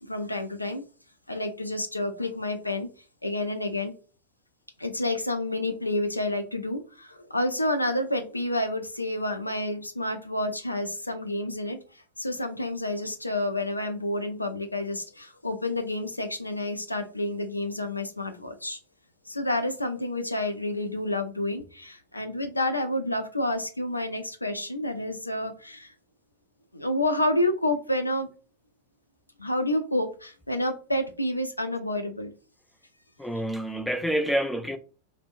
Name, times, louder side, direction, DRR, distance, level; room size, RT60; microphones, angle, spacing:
voice 1, 0.0-0.8 1.3-2.9 3.2-3.9 4.8-18.8 19.3-25.9 26.7-28.3 29.4-32.3, left 1 dB, 85° left, 0.4 m, -29 dB
voice 2, 33.2-34.8, equal, 5° left, 0.3 m, -27 dB
2.8 x 2.1 x 2.5 m
figure-of-eight pair, 90°, 0 cm